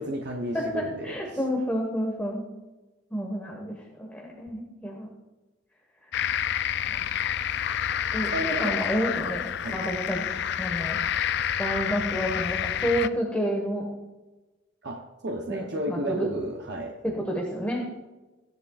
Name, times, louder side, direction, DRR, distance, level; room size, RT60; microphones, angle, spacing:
voice 1, 0.0-1.4 8.3-8.8 9.6-9.8 14.8-17.0, right 1 dB, 55° right, 1 dB, 0.9 m, -33 dB
voice 2, 0.5-2.4 3.1-5.1 6.9-7.1 8.1-9.5 9.7-10.2 10.6-11.0 11.6-13.9 15.5-16.3 17.0-18.0, equal, 10° left, -1 dB, 1.4 m, -30 dB
sound 1, 6.1-13.1, left 9 dB, 60° left, 0.4 m, -28 dB
16.5 x 10.5 x 2.4 m, 1.1 s
head